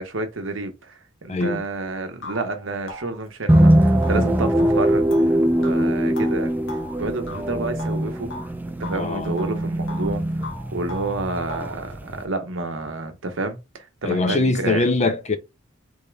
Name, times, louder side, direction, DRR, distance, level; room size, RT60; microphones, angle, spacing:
voice 1, 0.0-6.5 7.0-8.3 8.8-15.1, right 2 dB, 80° right, 1.1 m, -30 dB
voice 2, 1.3-1.6 4.1-4.4 8.9-9.4 14.0-15.4, left 2 dB, 35° left, 0.6 m, -23 dB
sound 1, 1.6-1.7 2.2-8.5 8.8-10.1 10.4-11.8, left 1 dB, 75° left, 1.2 m, -39 dB
sound 2, 3.5-12.2, right 1 dB, 10° right, 0.4 m, -21 dB
4.1 x 3.6 x 3.3 m
head